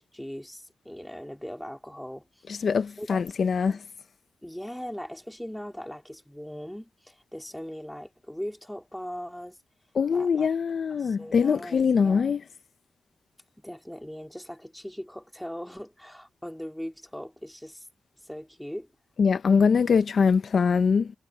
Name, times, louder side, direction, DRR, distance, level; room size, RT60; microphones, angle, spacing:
voice 1, 0.0-2.7 3.0-3.2 3.7-3.8 4.4-9.6 10.1-10.5 10.9-12.4 13.6-17.9 18.2-18.9, equal, 5° left, 2.5 m, -40 dB
voice 2, 2.5-3.8 9.9-12.4 19.2-21.1, left 6 dB, 50° left, 0.5 m, -23 dB
wide cardioid pair, 170°, 0 cm